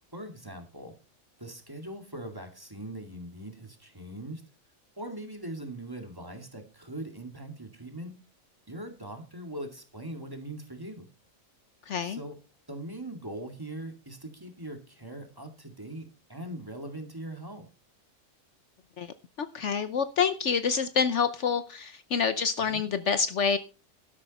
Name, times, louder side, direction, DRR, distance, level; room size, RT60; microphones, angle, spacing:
voice 1, 0.1-1.0 1.4-4.4 5.0-8.2 8.7-11.1 12.0-12.4 12.7-17.7 22.7-22.8, right 1 dB, 15° right, 5 dB, 2.3 m, -41 dB
voice 2, 11.9-12.2 19.0-23.6, left 6 dB, 60° left, 12 dB, 1.0 m, -27 dB
12.0 x 11.5 x 4.2 m, 0.33 s
omnidirectional pair, 1.4 m